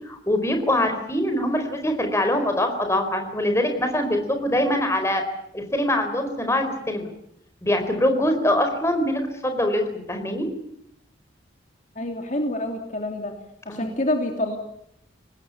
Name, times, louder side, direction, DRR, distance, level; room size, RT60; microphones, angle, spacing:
voice 1, 0.0-5.2 5.5-7.1 7.6-10.5 13.7-13.9, left 1 dB, 15° left, 5 dB, 4.5 m, -23 dB
voice 2, 12.0-13.3 13.6-14.6, left 1 dB, 40° left, 4 dB, 2.8 m, -27 dB
26.0 x 19.5 x 8.5 m, 0.75 s
head